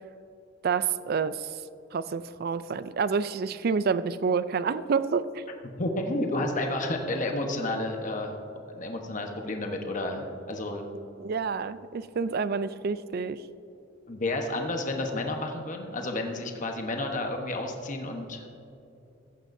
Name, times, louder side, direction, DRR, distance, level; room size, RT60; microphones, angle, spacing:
voice 1, 0.6-1.6 1.9-5.4 11.2-13.4, right 5 dB, 50° right, 14 dB, 0.4 m, -28 dB
voice 2, 5.8-8.4 8.7-10.8 14.1-18.5, left 2 dB, 40° left, 3 dB, 1.1 m, -31 dB
15.0 x 14.0 x 2.7 m, 2.8 s
head